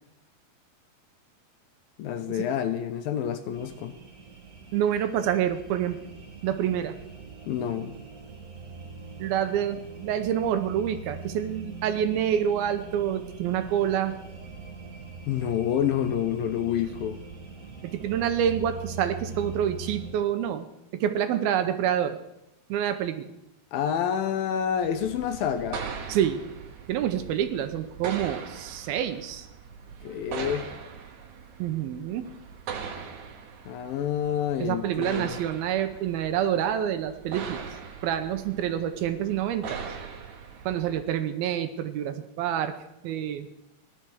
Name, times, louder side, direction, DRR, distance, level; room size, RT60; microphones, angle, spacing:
voice 1, 2.0-3.9 7.5-8.0 15.3-17.2 23.7-25.8 30.0-30.7 33.7-35.4, left 9 dB, 75° left, 10 dB, 2.3 m, -28 dB
sound 1, 3.5-20.1, right 4 dB, 40° right, 1.2 m, -42 dB
voice 2, 4.7-6.0 6.4-6.9 9.2-14.1 17.9-20.7 20.9-22.2 22.7-23.3 26.1-26.4 26.9-29.5 31.6-32.3 34.6-37.6 38.0-39.8 40.7-42.7 43.0-43.5, right 10 dB, 80° right, 9 dB, 2.5 m, -27 dB
sound 2, 24.8-41.0, right 6 dB, 60° right, 2.3 m, -41 dB
16.5 x 11.5 x 6.2 m, 0.87 s
omnidirectional pair, 4.6 m